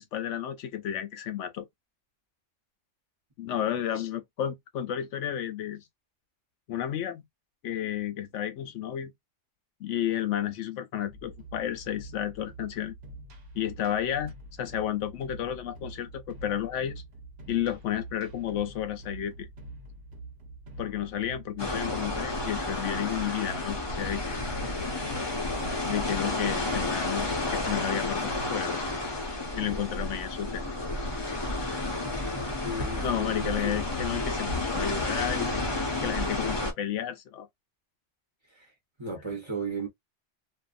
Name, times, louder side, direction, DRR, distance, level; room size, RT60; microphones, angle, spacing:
voice 1, 0.0-1.7 3.4-5.8 6.7-7.2 7.6-9.1 9.8-12.9 13.5-17.0 17.5-19.5 20.8-24.4 25.8-28.8 29.5-30.7 33.0-37.5, left 10 dB, 80° left, 0.9 m, -32 dB
sound 1, 11.1-28.5, right 2 dB, 60° right, 1.0 m, -45 dB
sound 2, 21.6-36.7, left 2 dB, 25° left, 0.8 m, -31 dB
voice 2, 32.6-33.8 38.5-38.6 39.0-39.9, right 2 dB, 25° right, 1.0 m, -35 dB
2.6 x 2.5 x 2.4 m
omnidirectional pair, 1.2 m